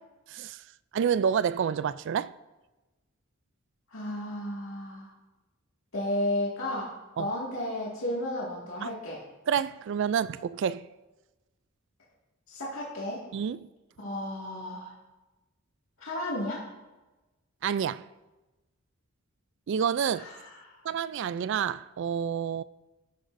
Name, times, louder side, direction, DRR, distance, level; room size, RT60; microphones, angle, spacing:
voice 1, 0.3-0.6 0.9-2.3 7.2-7.3 8.8-8.9 9.5-10.9 13.3-13.7 17.6-18.0 19.7-20.3 20.8-22.6, right 7 dB, 60° right, 0.3 m, -28 dB
voice 2, 3.9-5.1 5.9-9.2 12.5-13.2 14.0-14.9 16.0-16.6 20.1-20.8, left 1 dB, 75° left, 2.0 m, -33 dB
13.5 x 10.0 x 2.6 m
head